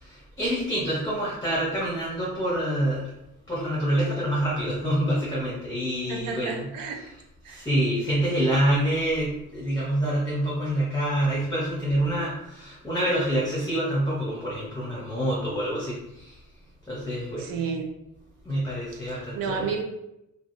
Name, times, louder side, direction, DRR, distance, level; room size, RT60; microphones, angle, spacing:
voice 1, 0.0-3.1 3.5-6.7 7.5-16.4 16.9-17.5 18.4-19.7, right 1 dB, 10° left, -6 dB, 0.7 m, -26 dB
voice 2, 6.1-7.0 7.4-7.7 17.4-17.8 18.9-19.8, right 5 dB, 75° right, 4 dB, 0.6 m, -32 dB
3.2 x 2.3 x 2.5 m, 0.86 s
cardioid pair, 155°, 34 cm